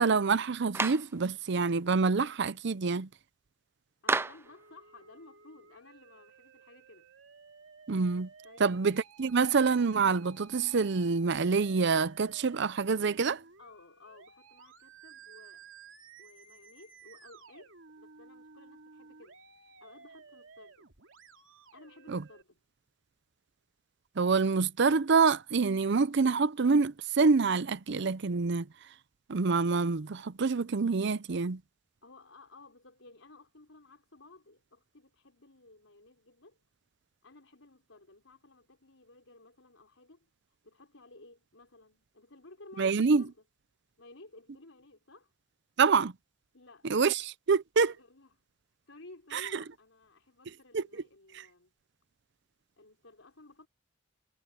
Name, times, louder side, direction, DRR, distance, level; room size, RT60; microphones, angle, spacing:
voice 1, 0.0-3.1 7.9-8.3 8.6-13.4 22.1-22.2 24.2-28.7 29.3-31.6 42.8-43.2 45.8-46.1 46.9-47.9 49.3-49.4 50.7-50.8, right 4 dB, 60° right, 0.6 m, -26 dB
Clapping, 0.7-1.1 4.1-4.5, right 3 dB, 10° right, 0.3 m, -30 dB
voice 2, 4.0-7.1 8.4-8.8 13.6-15.7 16.2-20.9 21.7-22.6 32.0-36.6 37.2-43.4 44.0-45.3 46.5-46.9 47.8-48.3 48.9-51.7 52.8-53.7, left 2 dB, 80° left, 4.5 m, -55 dB
Musical instrument, 4.5-22.4, right 5 dB, 75° right, 2.8 m, -56 dB
head